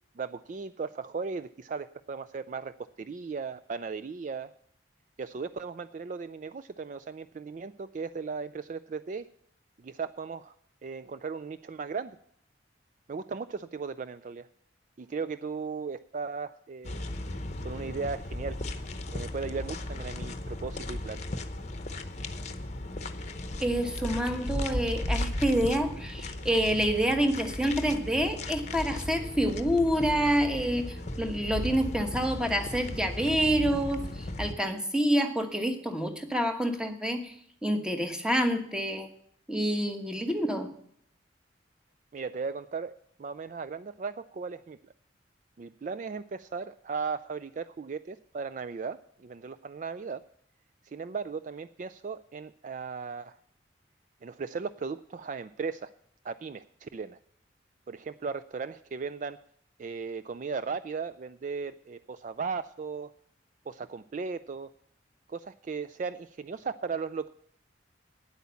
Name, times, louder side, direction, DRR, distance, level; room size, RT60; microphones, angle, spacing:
voice 1, 0.2-4.5 5.2-9.3 9.8-10.5 10.8-12.2 13.1-14.5 15.0-17.0 17.6-18.6 19.1-21.3 42.1-44.8 45.6-50.2 50.8-53.4 54.2-55.9 56.2-57.2 57.9-59.4 59.8-63.1 63.7-64.7 65.3-67.3, right 5 dB, 40° right, 13 dB, 0.3 m, -37 dB
sound 1, 16.8-34.5, left 1 dB, 40° left, 0.8 m, -36 dB
voice 2, 23.6-37.3 37.6-39.1 39.5-40.7, equal, 5° right, 6 dB, 1.1 m, -27 dB
9.5 x 8.3 x 7.0 m, 0.64 s
head